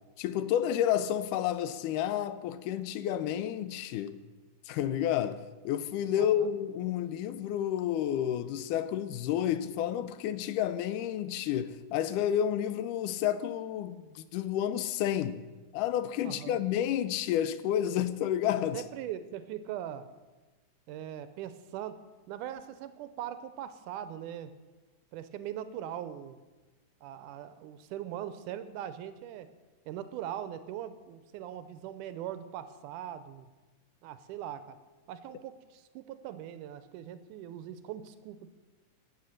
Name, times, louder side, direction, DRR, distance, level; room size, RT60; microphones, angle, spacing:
voice 1, 0.2-4.2 4.7-15.5 15.7-18.8, left 10 dB, 85° left, 2.2 m, -30 dB
voice 2, 6.2-6.5 16.2-16.6 18.7-20.1 20.9-22.0 22.3-24.5 25.1-26.4 27.0-29.5 29.9-33.5 34.0-34.8 35.1-38.5, right 10 dB, 90° right, 2.2 m, -41 dB
16.5 x 6.9 x 6.4 m
omnidirectional pair, 3.7 m